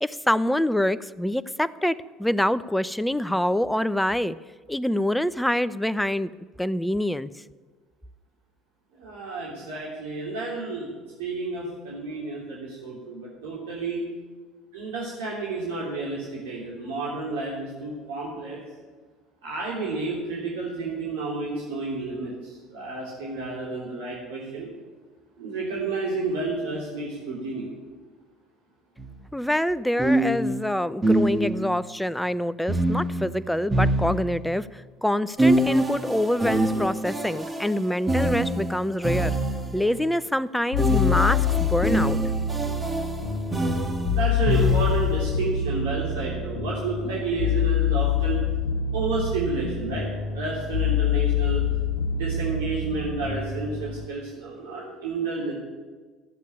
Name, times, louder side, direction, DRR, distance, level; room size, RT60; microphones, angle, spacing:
voice 1, 0.0-4.4 4.7-6.3 6.6-7.3 29.3-39.4 39.7-42.2, left 1 dB, 5° left, 16 dB, 0.6 m, -25 dB
voice 2, 8.9-10.9 11.2-14.0 14.7-18.6 19.4-24.7 25.4-27.7 44.1-48.4 48.9-50.1 50.3-51.6 52.1-55.5, right 3 dB, 80° right, -4 dB, 3.3 m, -31 dB
sound 1, 29.0-29.1 30.0-31.8 32.7-34.6 35.4-39.9 40.8-45.3, right 1 dB, 20° right, 1.8 m, -25 dB
sound 2, 40.7-54.1, left 7 dB, 85° left, 1.8 m, -26 dB
14.0 x 8.4 x 9.7 m, 1.4 s
hypercardioid pair, 70°, 0 cm